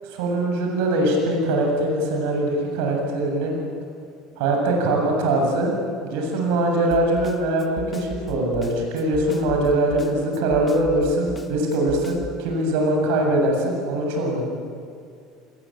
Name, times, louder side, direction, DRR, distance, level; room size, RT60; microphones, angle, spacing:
voice 1, 0.0-3.5 4.4-5.7 6.0-14.5, right 1 dB, 80° right, 1 dB, 7.5 m, -22 dB
Snare drum, 6.9-12.4, left 3 dB, 15° left, 1.6 m, -38 dB
29.0 x 21.5 x 8.8 m, 2.3 s
cardioid pair, 170°, 0 cm